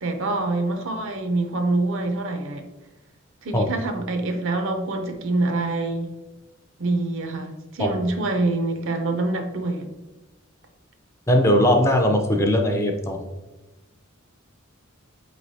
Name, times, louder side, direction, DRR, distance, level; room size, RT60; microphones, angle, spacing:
voice 1, 0.0-2.6 3.4-6.1 6.8-9.9, right 2 dB, 65° right, 6 dB, 0.5 m, -25 dB
voice 2, 11.3-13.2, equal, 15° left, 3 dB, 0.4 m, -19 dB
4.8 x 3.1 x 2.7 m, 1.1 s
head